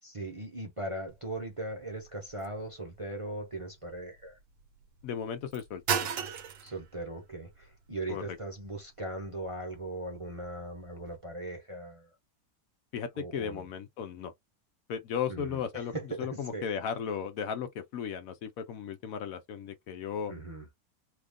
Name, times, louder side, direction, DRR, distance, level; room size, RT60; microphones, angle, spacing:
voice 1, 0.0-4.4 6.6-12.2 13.1-13.7 15.3-16.7 20.3-20.7, right 2 dB, 25° right, 0.7 m, -39 dB
sound 1, 1.1-11.2, right 8 dB, 65° right, 1.0 m, -40 dB
voice 2, 5.0-6.1 8.1-8.2 12.9-14.3 14.9-15.9 16.2-20.3, left 7 dB, 70° left, 1.0 m, -35 dB
2.9 x 2.4 x 3.5 m
omnidirectional pair, 1.6 m